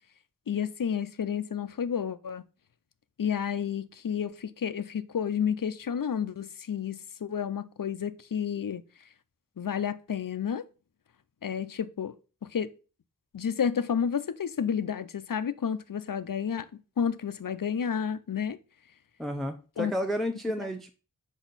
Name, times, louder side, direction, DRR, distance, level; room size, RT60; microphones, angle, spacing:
voice 1, 0.5-2.4 3.2-8.8 9.6-10.6 11.4-12.1 12.5-12.7 13.3-16.7 17.0-18.6 19.8-19.9, left 7 dB, 70° left, 0.6 m, -30 dB
voice 2, 19.2-20.9, equal, ahead, 0.6 m, -31 dB
6.1 x 5.4 x 4.0 m
wide cardioid pair, 40°, 34 cm